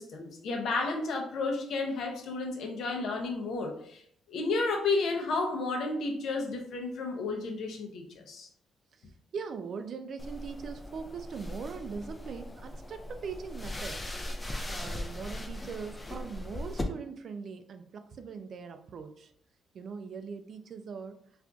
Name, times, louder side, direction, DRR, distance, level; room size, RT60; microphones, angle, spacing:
voice 1, 0.0-4.0 4.3-8.5, left 3 dB, 70° left, 2 dB, 0.6 m, -32 dB
voice 2, 9.3-14.0 14.3-19.3 19.7-21.2, right 5 dB, 55° right, 8 dB, 0.3 m, -41 dB
sound 1, 10.2-16.8, left 1 dB, 20° left, 0.4 m, -39 dB
3.7 x 2.5 x 2.3 m, 0.65 s
cardioid pair, 90°, 0 cm